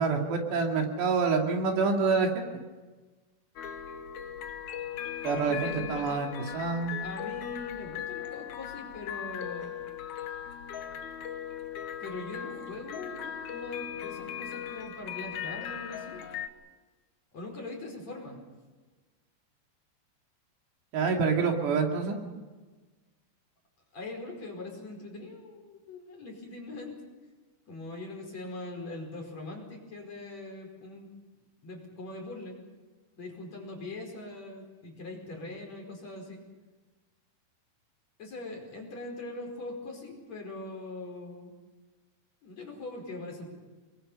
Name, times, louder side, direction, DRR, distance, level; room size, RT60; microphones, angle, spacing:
voice 1, 0.0-2.4 5.2-6.3 6.5-7.0 20.9-22.2, right 4 dB, 75° right, 2 dB, 4.7 m, -27 dB
sound 1, 3.6-16.5, left 9 dB, 75° left, 1.7 m, -38 dB
voice 2, 5.5-6.2 7.0-9.7 12.0-16.3 17.3-18.4 23.9-27.0 27.7-31.1 31.6-32.6 33.2-36.4 38.2-41.5 42.4-43.5, left 2 dB, 40° left, 1 dB, 5.9 m, -41 dB
29.5 x 22.0 x 5.6 m, 1.3 s
omnidirectional pair, 5.0 m